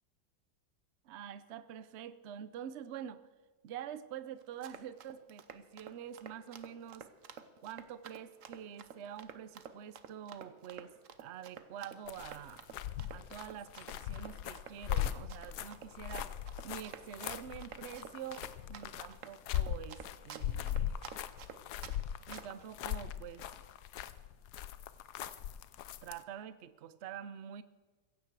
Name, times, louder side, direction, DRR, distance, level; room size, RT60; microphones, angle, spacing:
voice 1, 1.0-3.2 3.6-7.1 7.6-10.9 11.2-12.7 13.1-16.3 16.6-21.0 22.3-23.4 26.0-27.6, right 9 dB, 75° right, 14 dB, 0.6 m, -46 dB
Run, 4.4-22.0 22.3-22.6, right 8 dB, 55° right, 1.0 m, -50 dB
sound 1, 12.1-26.2, left 11 dB, 70° left, 1.1 m, -39 dB
16.0 x 15.5 x 4.7 m, 1.3 s
omnidirectional pair, 2.0 m